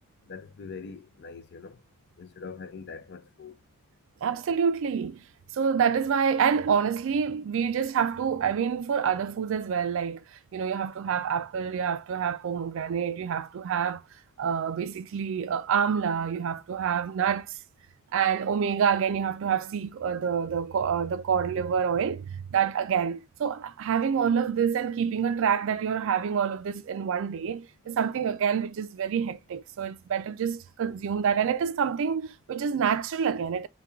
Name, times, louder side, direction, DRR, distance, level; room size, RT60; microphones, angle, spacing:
voice 1, 0.3-1.8 2.2-3.6, left 5 dB, 50° left, 0.5 m, -43 dB
voice 2, 4.2-5.2 5.5-10.2 10.5-14.0 14.4-17.6 18.1-33.7, right 7 dB, 60° right, 0.3 m, -27 dB
3.4 x 2.3 x 4.3 m
head